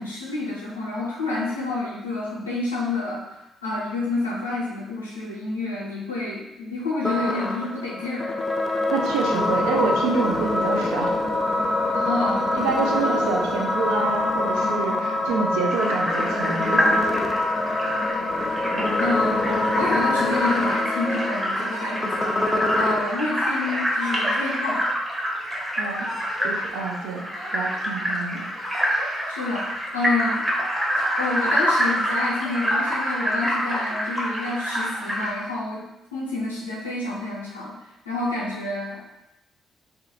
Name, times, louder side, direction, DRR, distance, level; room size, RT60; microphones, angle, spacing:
voice 1, 0.0-8.4 11.9-12.6 13.2-13.3 19.0-19.3 19.7-24.9 29.3-30.5 31.2-37.7 38.1-39.1, left 2 dB, 80° left, -6 dB, 0.5 m, -29 dB
sound 1, 7.0-23.0, left 2 dB, 25° left, 0.3 m, -25 dB
voice 2, 8.9-11.2 12.5-17.0 18.7-18.9 25.8-26.1 26.4-27.2 27.5-28.5, right 4 dB, 65° right, 0 dB, 0.3 m, -27 dB
sound 2, 15.7-35.3, equal, 10° right, 0.7 m, -26 dB
Yell / Crying sobbing, 21.5-22.3 23.6-24.6 25.7-26.6 26.9-27.8 28.4-29.3, right 1 dB, 50° right, 0.9 m, -38 dB
2.2 x 2.1 x 2.8 m, 0.90 s
figure-of-eight pair, 40°, 0 cm